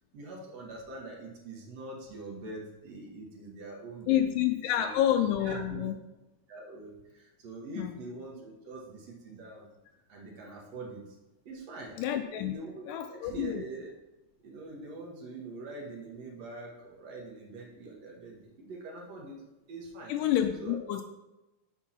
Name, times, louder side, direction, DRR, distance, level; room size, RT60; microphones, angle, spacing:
voice 1, 0.1-5.0 5.4-5.9 6.5-9.7 10.1-11.0 11.5-12.0 12.4-13.9 14.4-19.4 19.7-20.2 20.6-20.8, right 2 dB, 60° right, -1 dB, 2.1 m, -43 dB
voice 2, 4.1-6.0 7.8-7.9 12.0-12.5 12.9-13.7 20.1-21.0, left 11 dB, 85° left, 5 dB, 2.2 m, -28 dB
7.0 x 4.6 x 5.7 m, 1.0 s
omnidirectional pair, 3.8 m